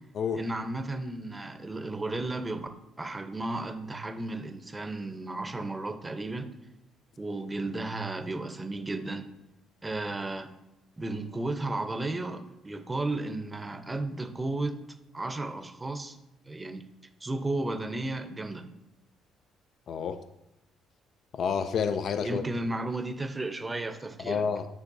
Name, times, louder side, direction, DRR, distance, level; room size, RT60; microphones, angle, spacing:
voice 1, 0.4-2.7 3.0-6.5 7.2-9.3 9.8-10.5 11.0-14.8 15.1-16.2 16.5-16.8 17.2-18.6 22.2-24.4, right 2 dB, 20° right, 0.7 m, -34 dB
voice 2, 19.9-20.2 21.3-22.4 24.2-24.7, left 6 dB, 60° left, 0.4 m, -29 dB
7.3 x 6.4 x 2.7 m
supercardioid pair, 75°, 0 cm